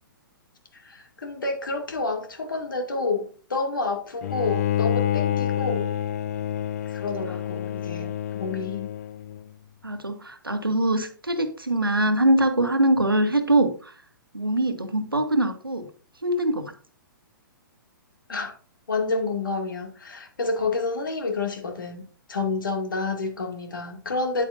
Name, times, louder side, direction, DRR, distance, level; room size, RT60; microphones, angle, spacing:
voice 1, 0.7-5.9 6.9-8.9 18.3-18.5 18.9-24.5, left 3 dB, 70° left, 2.4 m, -29 dB
Bowed string instrument, 4.2-9.4, left 11 dB, 45° left, 0.4 m, -28 dB
voice 2, 9.8-13.9 14.3-15.9 16.2-16.7, right 1 dB, 90° right, 1.4 m, -23 dB
9.9 x 8.4 x 2.7 m
figure-of-eight pair, 120°, 11 cm